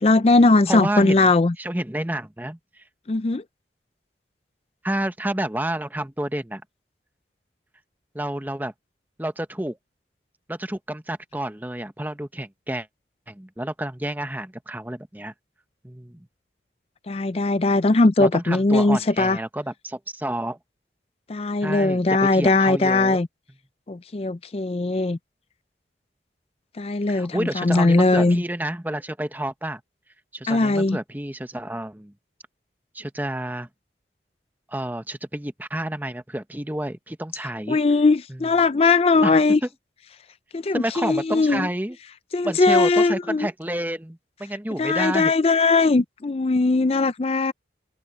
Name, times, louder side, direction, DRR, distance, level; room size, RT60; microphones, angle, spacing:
voice 1, 0.0-1.5 3.1-3.4 17.1-19.4 21.3-23.3 23.9-25.2 26.8-28.4 30.5-31.0 37.7-39.6 40.5-41.7 42.3-43.5 44.8-47.5, left 3 dB, 35° left, 0.4 m, -19 dB
voice 2, 0.7-1.2 1.6-2.8 4.8-6.6 8.1-8.7 9.2-9.8 10.5-12.9 13.3-15.3 15.8-16.3 18.2-20.6 21.6-22.0 22.3-23.2 27.1-29.8 30.3-32.1 32.9-33.7 34.7-37.8 38.3-38.5 39.2-39.4 40.7-42.0 42.4-45.3, right 1 dB, 10° right, 1.0 m, -29 dB
open air
head